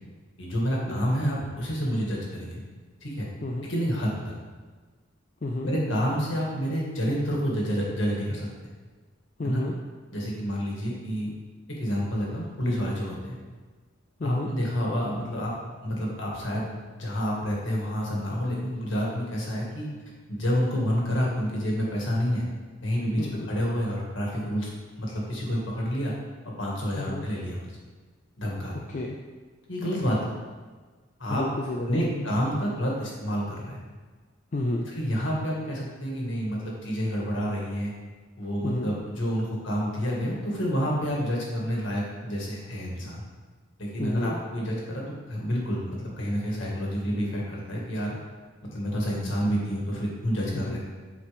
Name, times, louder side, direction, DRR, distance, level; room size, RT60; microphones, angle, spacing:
voice 1, 0.4-2.6 3.0-3.3 3.7-4.3 5.6-8.5 9.4-9.6 10.1-11.3 11.8-13.4 14.2-16.7 16.9-19.9 20.3-22.4 22.8-24.7 25.0-26.1 26.4-27.7 28.4-28.7 29.7-30.3 31.2-31.4 31.9-33.8 34.9-37.9 38.4-43.2 43.8-48.2 48.6-50.8, equal, 65° left, -3 dB, 1.8 m, -29 dB
voice 2, 9.4-9.7 14.2-14.5 23.2-23.5 27.0-27.3 28.7-29.2 31.3-32.3 34.5-34.9 38.6-38.9 44.0-44.4 50.5-50.8, left 1 dB, 35° left, 0 dB, 0.4 m, -31 dB
8.0 x 5.0 x 3.4 m, 1.4 s
head